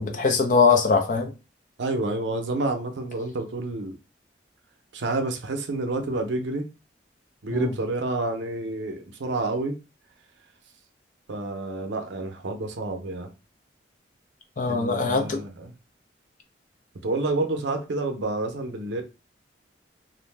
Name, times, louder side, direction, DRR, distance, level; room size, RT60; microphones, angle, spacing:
voice 1, 0.0-1.3 7.5-7.7 14.6-15.4, left 4 dB, 45° left, 0.5 m, -22 dB
voice 2, 1.8-4.0 4.9-6.7 7.4-9.8 11.3-13.3 14.7-15.7 17.0-19.0, right 2 dB, 75° right, 0.6 m, -29 dB
2.5 x 2.1 x 3.2 m
head